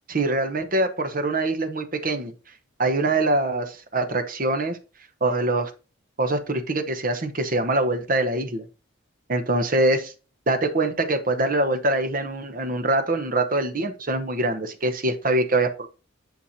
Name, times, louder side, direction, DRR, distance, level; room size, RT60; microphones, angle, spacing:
voice 1, 0.1-2.3 2.8-4.8 5.2-5.7 6.2-8.7 9.3-10.1 10.5-15.9, right 2 dB, 40° right, 7 dB, 0.9 m, -24 dB
8.6 x 5.9 x 2.7 m, 0.33 s
head